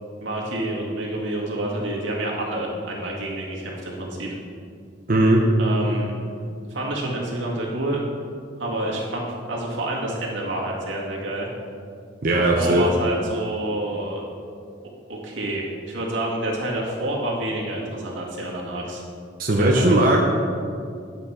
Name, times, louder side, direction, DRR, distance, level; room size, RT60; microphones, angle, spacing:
voice 1, 0.2-4.4 5.6-6.1 6.7-8.0 8.6-11.5 12.3-14.2 15.1-19.0 19.5-20.1, right 1 dB, 85° right, -3 dB, 1.9 m, -28 dB
voice 2, 5.1-5.4 12.2-12.8 19.4-20.2, right 1 dB, 45° right, -1 dB, 0.8 m, -18 dB
10.0 x 7.3 x 4.3 m, 2.4 s
head